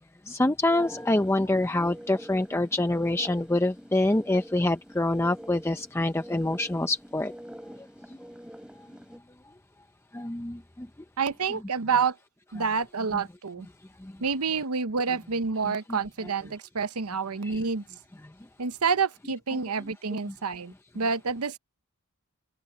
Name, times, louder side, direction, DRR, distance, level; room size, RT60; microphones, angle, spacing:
voice 1, 0.3-7.3 10.1-10.9 14.0-14.1 15.6-15.7 17.4-17.6, left 2 dB, 10° left, 0.5 m, -26 dB
sound 1, 0.7-9.2, equal, 5° right, 4.6 m, -45 dB
voice 2, 11.2-12.2 12.5-13.7 14.2-17.8 18.6-21.6, right 5 dB, 85° right, 0.9 m, -28 dB
open air
head